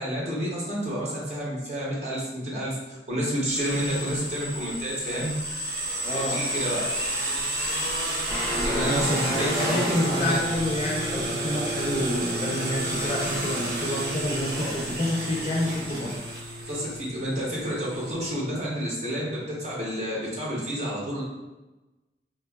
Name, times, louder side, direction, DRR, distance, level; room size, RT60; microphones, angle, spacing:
voice 1, 0.0-5.3 6.1-6.9 8.6-10.4 14.6-14.7 16.7-21.2, equal, 40° right, -4 dB, 0.6 m, -29 dB
sound 1, 3.4-18.1, right 1 dB, 70° right, 0.8 m, -31 dB
voice 2, 6.0-6.4 8.5-16.1, left 1 dB, 30° left, -2 dB, 0.5 m, -28 dB
Guitar, 8.3-19.7, equal, 5° right, 0.8 m, -35 dB
3.2 x 2.2 x 2.2 m, 1.1 s
head